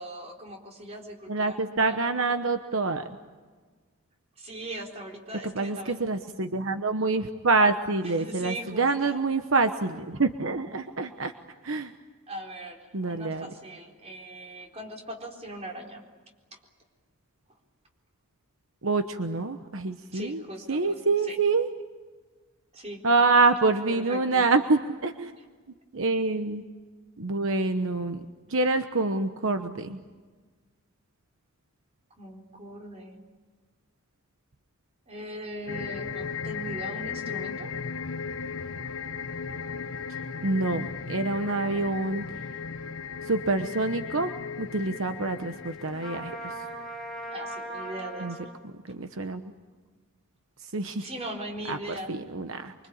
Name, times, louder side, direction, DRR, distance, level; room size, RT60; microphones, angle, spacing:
voice 1, 0.0-2.3 4.4-6.1 8.0-9.2 12.3-16.0 16.5-16.6 20.1-21.4 22.7-23.0 24.1-24.4 32.2-33.2 35.1-37.7 41.5-41.9 47.3-48.5 50.9-52.2, right 1 dB, 30° right, 1 dB, 4.1 m, -40 dB
voice 2, 1.3-3.0 5.4-11.3 11.6-11.9 12.9-13.5 18.8-20.4 20.7-21.7 23.0-25.3 25.9-26.6 27.2-28.2 28.5-30.0 40.4-42.2 43.2-44.3 44.6-46.5 48.2-48.4 48.9-49.5 50.6-51.1 51.7-51.8 52.1-52.7, right 3 dB, 65° right, 8 dB, 1.1 m, -26 dB
sound 1, 35.7-47.2, left 5 dB, 70° left, 1.0 m, -36 dB
Trumpet, 46.0-48.5, right 1 dB, ahead, 5.1 m, -38 dB
25.0 x 25.0 x 8.7 m, 1.4 s
head